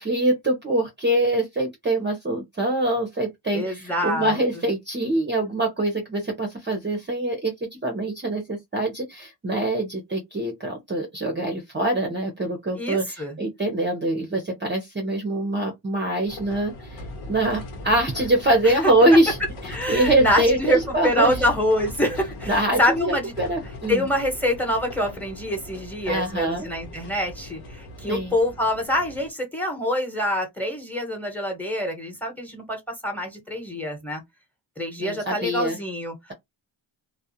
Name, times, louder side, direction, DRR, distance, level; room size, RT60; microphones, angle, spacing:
voice 1, 0.0-19.4 19.9-21.3 22.5-24.0 26.1-26.7 28.1-28.3 35.0-35.8, right 1 dB, 20° right, 0.7 m, -24 dB
voice 2, 3.5-4.4 12.8-13.4 18.6-18.9 19.7-23.3 23.9-34.2 34.8-36.3, left 1 dB, 5° left, 1.1 m, -25 dB
sound 1, 16.3-29.3, left 1 dB, 85° left, 0.9 m, -39 dB
2.3 x 2.2 x 2.8 m
cardioid pair, 70°, 49 cm